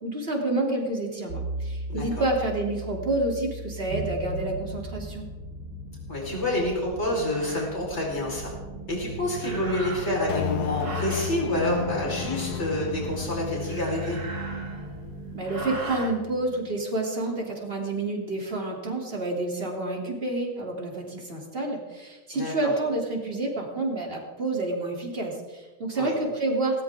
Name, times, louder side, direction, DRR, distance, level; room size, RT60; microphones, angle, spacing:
voice 1, 0.0-5.3 15.3-26.8, right 2 dB, 35° right, -1 dB, 3.4 m, -29 dB
sound 1, 1.3-15.8, right 2 dB, 65° right, 2.2 m, -37 dB
voice 2, 6.1-8.5 8.9-14.2 22.3-22.7 25.9-26.1, left 1 dB, 45° left, -3 dB, 5.0 m, -28 dB
sound 2, 6.3-6.4 7.2-7.7 9.3-10.3 10.7-11.4 13.5-15.0 15.4-16.1, right 2 dB, 85° right, 3.2 m, -39 dB
sound 3, 10.3-16.8, left 12 dB, 90° left, 1.2 m, -35 dB
19.0 x 19.0 x 3.7 m, 1.3 s
omnidirectional pair, 1.6 m